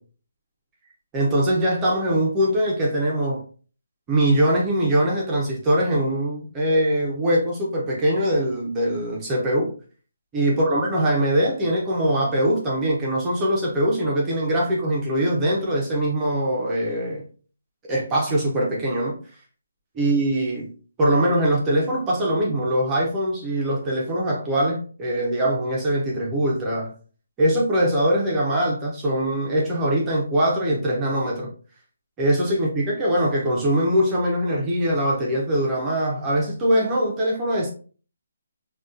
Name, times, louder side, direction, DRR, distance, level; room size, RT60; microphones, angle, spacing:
voice 1, 1.1-3.4 4.1-9.7 10.3-17.2 17.9-19.2 20.0-20.7 21.0-26.9 27.4-31.5 32.2-37.7, right 1 dB, 10° right, -4 dB, 0.5 m, -22 dB
3.9 x 2.2 x 2.4 m, 0.40 s
hypercardioid pair, 175°, 0 cm